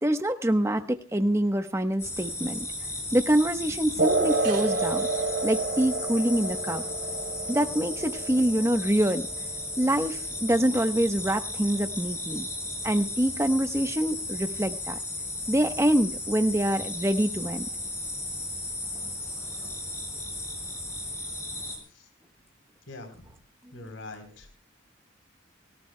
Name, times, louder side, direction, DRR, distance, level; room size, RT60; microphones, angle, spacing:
voice 1, 0.0-2.7 3.1-5.1 5.4-6.8 7.5-9.3 9.8-12.5 12.8-15.0 15.5-17.7, right 1 dB, 15° right, 7 dB, 1.1 m, -25 dB
sound 1, 2.0-21.8, left 2 dB, 15° left, 6.9 m, -35 dB
sound 2, 4.0-11.0, right 3 dB, 55° right, 3.5 m, -30 dB
voice 2, 22.9-23.4 23.7-24.5, left 2 dB, 75° left, 5 dB, 3.8 m, -43 dB
29.5 x 18.0 x 2.3 m, 0.35 s
head